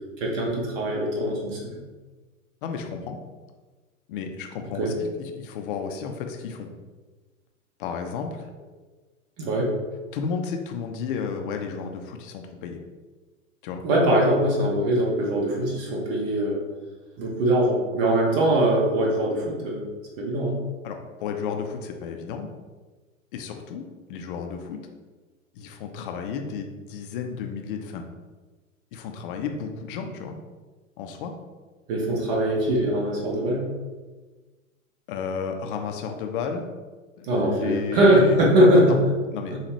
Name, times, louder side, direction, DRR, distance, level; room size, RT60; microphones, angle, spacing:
voice 1, 0.2-1.6 4.8-4.9 9.4-9.7 13.8-16.6 17.2-19.9 20.2-20.6 31.9-33.6 37.3-38.9 39.5-39.6, right 1 dB, 45° right, -2 dB, 1.2 m, -21 dB
voice 2, 2.6-3.2 4.1-6.7 7.8-8.5 10.1-12.8 13.6-13.8 20.8-22.5 23.3-23.8 24.1-24.8 25.5-28.1 28.9-30.3 31.0-31.3 35.1-36.6 37.2-39.0 39.3-39.5, left 6 dB, 40° left, 4 dB, 0.6 m, -32 dB
7.0 x 2.4 x 3.0 m, 1.3 s
figure-of-eight pair, 100°, 40 cm